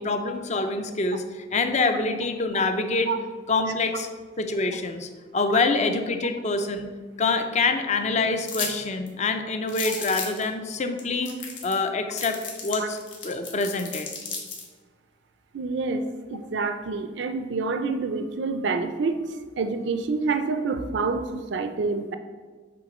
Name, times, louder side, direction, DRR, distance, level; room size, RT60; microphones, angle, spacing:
voice 1, 0.0-3.1 3.5-4.1 4.4-6.9 7.2-11.3 11.6-12.4 12.6-13.0 13.2-14.1, left 3 dB, 40° left, 7 dB, 0.5 m, -26 dB
sound 1, 8.4-8.7 9.1-9.2 9.7-10.4 11.0-11.1 11.2-11.8 12.2-14.6, left 5 dB, 85° left, 1.3 m, -33 dB
voice 2, 15.5-19.2 19.6-22.2, right 4 dB, 70° right, 8 dB, 0.4 m, -27 dB
7.6 x 3.9 x 4.2 m, 1.4 s
head